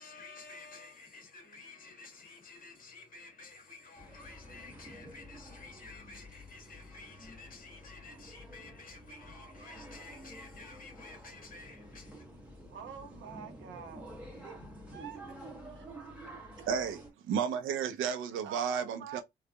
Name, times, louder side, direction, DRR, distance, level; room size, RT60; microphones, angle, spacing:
voice 1, 0.0-12.3, left 3 dB, 45° left, 2.1 m, -51 dB
sound 1, 3.9-17.1, right 1 dB, 5° right, 2.1 m, -50 dB
voice 2, 12.7-14.1 14.4-15.9 16.6-16.7 18.4-19.2, right 8 dB, 70° right, 1.4 m, -47 dB
voice 3, 16.7-19.2, right 7 dB, 85° right, 0.8 m, -33 dB
4.0 x 3.2 x 2.2 m
cardioid pair, 90°, 20 cm